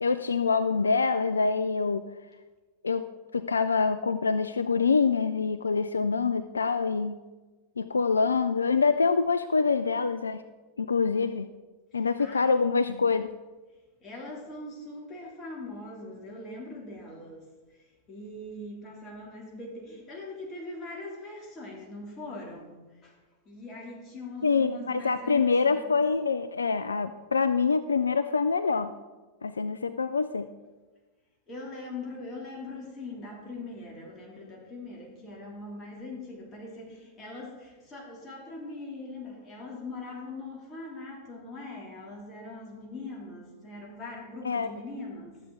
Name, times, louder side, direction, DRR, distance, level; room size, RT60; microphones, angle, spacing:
voice 1, 0.0-2.1 2.8-3.0 3.3-7.2 7.8-10.4 10.8-11.5 11.9-13.3 24.4-28.9 29.4-30.5 44.4-44.7, left 4 dB, 75° left, 12 dB, 0.3 m, -25 dB
voice 2, 11.9-12.5 14.0-23.2 23.4-26.0 31.5-45.4, left 2 dB, 25° left, -2 dB, 2.9 m, -41 dB
12.5 x 8.1 x 3.8 m, 1.2 s
figure-of-eight pair, 90°, 0 cm